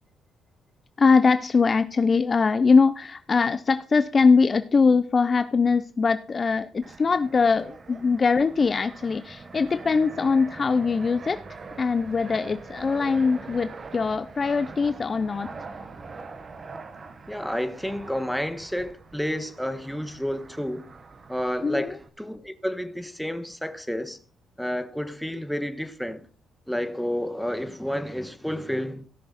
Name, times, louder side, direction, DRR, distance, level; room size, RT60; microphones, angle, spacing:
voice 1, 1.0-11.4 11.8-15.5 21.6-21.9, left 4 dB, 35° left, 0.5 m, -22 dB
Fixed-wing aircraft airplane, 6.8-22.1, right 4 dB, 40° right, 1.2 m, -43 dB
voice 2, 17.3-20.9 21.3-24.2 24.6-26.2 26.7-29.1, equal, ahead, 1.3 m, -30 dB
16.5 x 6.7 x 4.2 m
cardioid pair, 90°, 0 cm